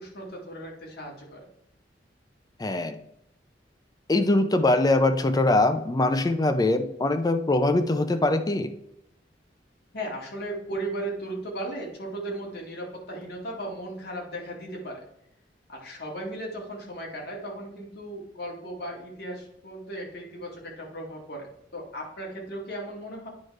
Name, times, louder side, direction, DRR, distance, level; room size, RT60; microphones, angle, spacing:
voice 1, 0.0-1.5 9.9-15.0 15.7-21.5 21.7-23.3, right 1 dB, 60° left, -1 dB, 2.1 m, -36 dB
voice 2, 2.6-3.0 4.1-8.7, left 2 dB, 20° left, 8 dB, 0.5 m, -22 dB
9.6 x 5.1 x 3.3 m, 0.77 s
head